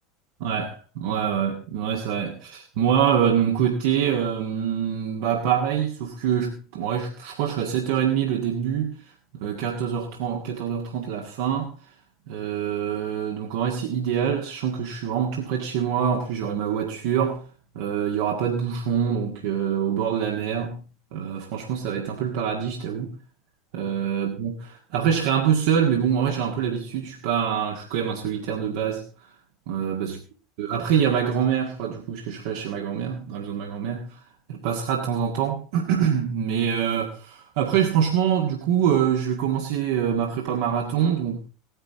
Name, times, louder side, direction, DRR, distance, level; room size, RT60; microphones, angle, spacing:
voice 1, 0.4-11.7 12.3-17.4 17.8-20.8 21.1-23.2 23.7-29.3 29.7-30.2 30.6-34.2 34.5-41.4, right 8 dB, 55° right, 1.8 m, -25 dB
17.5 x 10.0 x 3.8 m
figure-of-eight pair, 80°, 0 cm